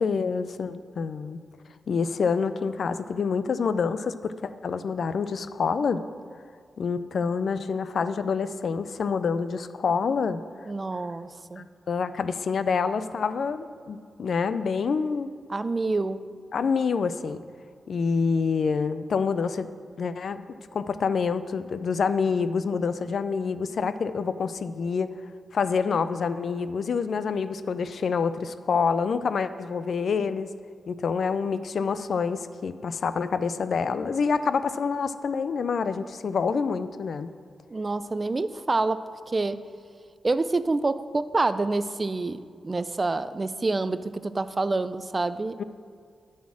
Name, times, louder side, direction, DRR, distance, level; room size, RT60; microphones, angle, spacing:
voice 1, 0.0-1.4 1.9-6.0 6.8-10.4 11.6-15.3 16.5-17.4 17.9-19.7 20.0-20.4 20.7-25.1 25.5-30.5 30.9-37.3 45.6-45.7, left 5 dB, 70° left, 12 dB, 0.4 m, -27 dB
voice 2, 10.7-11.6 15.5-16.3 37.7-39.6 40.2-45.6, right 3 dB, 35° right, 13 dB, 0.4 m, -27 dB
9.4 x 4.3 x 7.3 m, 2.2 s
cardioid pair, 60°, 0 cm